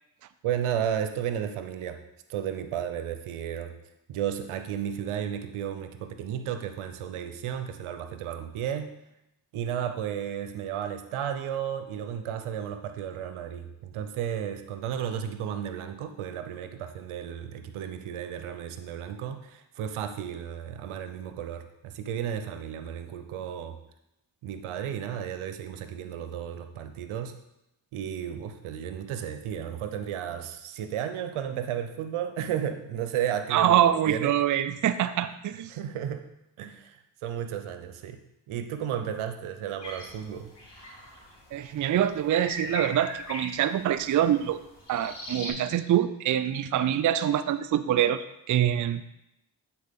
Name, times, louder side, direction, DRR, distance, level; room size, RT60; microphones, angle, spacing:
voice 1, 0.4-2.0 2.3-3.7 4.1-9.0 9.5-23.8 24.4-27.3 27.9-34.3 35.7-36.3 36.6-38.2 38.5-40.5, right 9 dB, 80° right, 8 dB, 0.7 m, -33 dB
voice 2, 33.5-35.7 41.5-44.6 44.9-49.0, right 11 dB, 40° right, 13 dB, 0.4 m, -25 dB
sound 1, 39.8-45.5, left 1 dB, 55° left, 2.7 m, -41 dB
8.6 x 4.3 x 3.6 m, 0.86 s
supercardioid pair, 45°, 49 cm